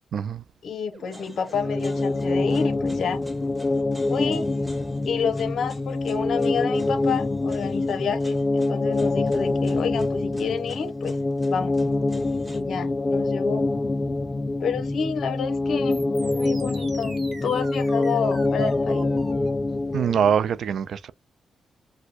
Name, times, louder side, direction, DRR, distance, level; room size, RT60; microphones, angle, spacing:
voice 1, 0.1-0.4 19.9-21.1, right 7 dB, 70° right, 0.3 m, -23 dB
voice 2, 0.6-3.3 4.1-4.5 5.0-11.1 11.5-11.8 12.5-13.7 14.6-17.1 17.4-19.1, left 6 dB, 70° left, 0.8 m, -29 dB
sound 1, 0.9-7.6 15.9-19.5, right 3 dB, 45° right, 1.1 m, -46 dB
sound 2, 1.1-12.6, equal, 5° right, 1.1 m, -48 dB
sound 3, 1.5-20.3, left 2 dB, 30° left, 0.4 m, -25 dB
4.2 x 2.1 x 2.5 m
cardioid pair, 70°, 0 cm